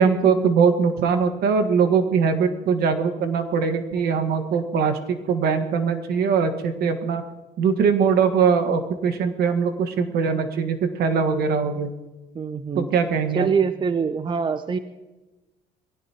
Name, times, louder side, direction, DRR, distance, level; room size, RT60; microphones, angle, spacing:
voice 1, 0.0-7.2 7.6-11.9 12.7-13.5, right 6 dB, 70° right, 7 dB, 1.7 m, -21 dB
voice 2, 12.3-12.9 13.3-14.8, right 6 dB, 30° right, 11 dB, 0.6 m, -24 dB
22.5 x 16.5 x 3.0 m, 1.1 s
cardioid pair, 110°, 17 cm